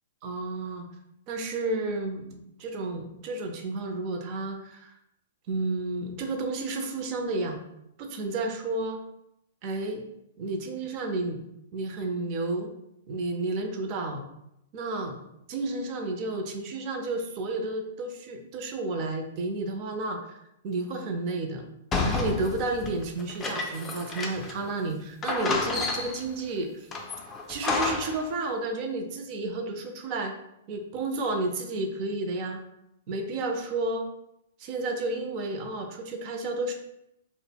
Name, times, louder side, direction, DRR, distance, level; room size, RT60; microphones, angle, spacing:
voice 1, 0.2-0.9 1.3-4.9 5.5-7.6 8.0-9.0 9.6-10.0 10.4-11.4 11.7-12.7 13.1-14.2 14.7-15.2 15.5-20.4 20.6-21.7 22.0-26.9 27.5-30.4 30.7-32.6 33.1-34.1 34.6-36.7, right 2 dB, 40° right, 4 dB, 0.5 m, -31 dB
sound 1, 21.9-24.7 24.9-25.0 25.2-26.3 26.9-28.3, left 3 dB, 20° left, 0.4 m, -30 dB
2.1 x 2.0 x 3.4 m, 0.81 s
hypercardioid pair, 120°, 0 cm